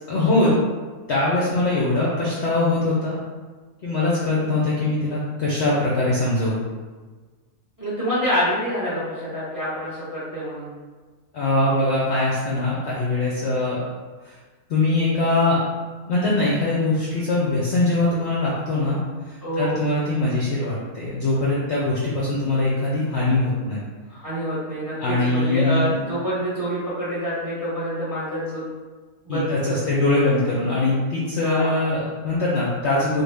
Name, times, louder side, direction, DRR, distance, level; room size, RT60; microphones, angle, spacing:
voice 1, 0.1-0.5 1.1-3.2 3.8-6.6 11.3-13.8 14.2-14.4 14.7-15.6 16.1-19.0 19.3-23.8 25.0-25.9 29.3-33.2, left 2 dB, 65° left, -6 dB, 0.7 m, -22 dB
voice 2, 7.8-10.7 19.4-19.8 24.1-28.6 29.2-29.9 30.2-30.5 31.4-31.7, equal, 20° right, -9 dB, 0.6 m, -27 dB
3.2 x 2.1 x 3.2 m, 1.4 s
omnidirectional pair, 1.6 m